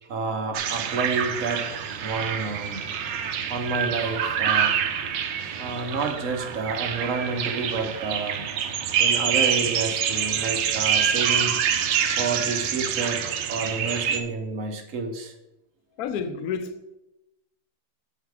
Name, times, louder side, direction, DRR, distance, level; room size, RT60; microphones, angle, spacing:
voice 1, 0.0-1.7 2.0-2.8 3.5-4.8 5.6-8.4 9.0-11.6 12.1-13.2 13.5-15.3, right 4 dB, 50° right, 1.2 m, -29 dB
sound 1, 0.5-14.2, right 8 dB, 80° right, 1.4 m, -26 dB
voice 2, 16.0-17.0, left 6 dB, 65° left, 1.0 m, -30 dB
7.6 x 5.3 x 4.7 m
omnidirectional pair, 1.9 m